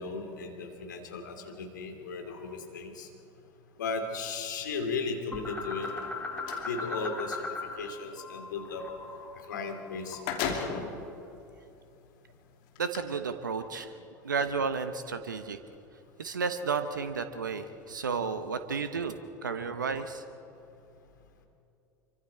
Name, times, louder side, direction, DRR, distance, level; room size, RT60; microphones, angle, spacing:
voice 1, 0.0-3.1 3.8-5.9 6.6-7.4 7.8-8.8 9.5-10.8, left 4 dB, 75° left, 4 dB, 2.9 m, -36 dB
sound 1, 5.3-7.9 8.2-10.5, left 3 dB, 10° left, 2.6 m, -38 dB
sound 2, 5.7-6.7 9.5-9.6 9.9-11.0 11.7-11.8 12.7-13.0, left 7 dB, 55° left, 2.8 m, -35 dB
voice 2, 12.8-13.9 14.2-15.6 16.2-19.1 19.4-20.2, right 5 dB, 85° right, 10 dB, 1.0 m, -32 dB
26.5 x 24.0 x 4.3 m, 2.7 s
figure-of-eight pair, 75°, 10 cm